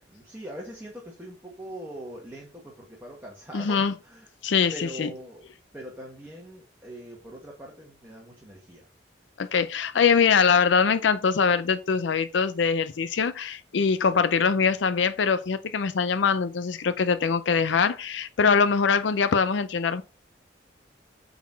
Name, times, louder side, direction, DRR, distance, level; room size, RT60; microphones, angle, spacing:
voice 1, 0.1-4.3 4.7-5.5 5.7-8.9 14.0-14.2, equal, 10° right, 1.6 m, -42 dB
voice 2, 3.5-3.9 4.4-5.1 9.4-20.0, left 5 dB, 80° left, 0.5 m, -23 dB
8.4 x 4.0 x 4.3 m
head